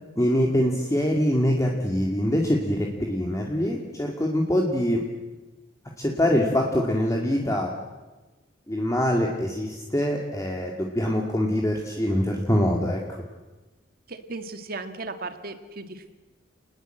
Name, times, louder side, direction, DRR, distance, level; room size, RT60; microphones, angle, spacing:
voice 1, 0.2-5.0 6.0-7.7 8.7-13.0, equal, 15° left, 0 dB, 2.2 m, -24 dB
voice 2, 14.1-16.1, right 3 dB, 55° right, 8 dB, 1.8 m, -36 dB
28.5 x 20.0 x 7.8 m, 1.2 s
head